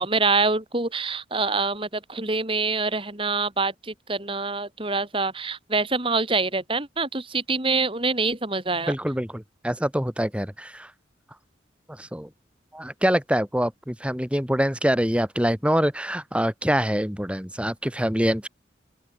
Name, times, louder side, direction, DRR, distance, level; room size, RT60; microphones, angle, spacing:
voice 1, 0.0-8.9, right 3 dB, 30° right, 3.1 m, -25 dB
voice 2, 8.9-10.9 11.9-12.3 12.7-18.5, equal, 5° right, 2.9 m, -25 dB
open air
head